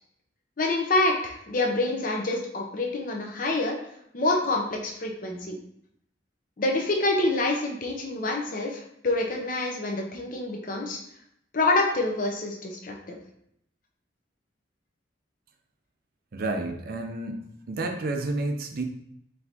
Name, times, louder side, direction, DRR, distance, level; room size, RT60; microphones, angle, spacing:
voice 1, 0.6-3.8 4.1-5.6 6.6-11.0 11.5-13.2, left 2 dB, 45° left, 1 dB, 0.6 m, -27 dB
voice 2, 16.3-17.4 17.7-18.8, right 2 dB, 50° right, 4 dB, 0.5 m, -30 dB
4.3 x 3.3 x 2.8 m, 0.72 s
head